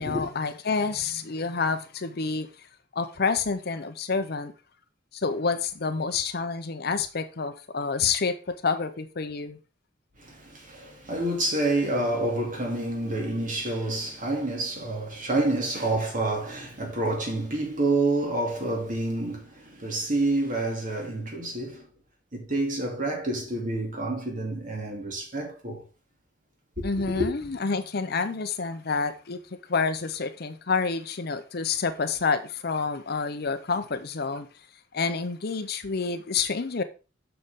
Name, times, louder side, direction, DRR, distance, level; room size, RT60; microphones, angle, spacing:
voice 1, 0.0-2.5 2.9-4.5 5.1-9.6 26.8-29.4 29.7-34.5 34.9-36.8, left 4 dB, 55° left, 0.7 m, -28 dB
voice 2, 10.2-21.9 22.3-25.8 26.8-27.3, right 2 dB, 45° right, 2.4 m, -28 dB
6.7 x 6.6 x 3.7 m
head